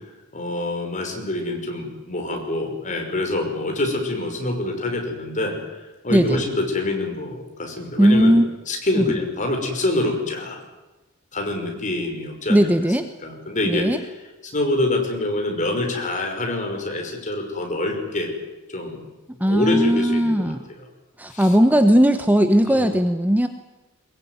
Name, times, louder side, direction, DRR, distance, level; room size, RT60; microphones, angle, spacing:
voice 1, 0.3-5.6 6.0-8.4 8.7-10.6 11.3-12.7 13.2-13.9 14.5-18.3 18.7-19.0 19.4-20.5 21.3-21.5 22.7-22.9, left 2 dB, 35° left, 3 dB, 5.6 m, -25 dB
voice 2, 8.0-8.5 9.0-9.1 12.5-13.1 13.6-14.0 19.4-20.6 21.2-23.5, equal, 10° right, 8 dB, 1.1 m, -17 dB
22.5 x 22.0 x 9.6 m, 1.1 s
head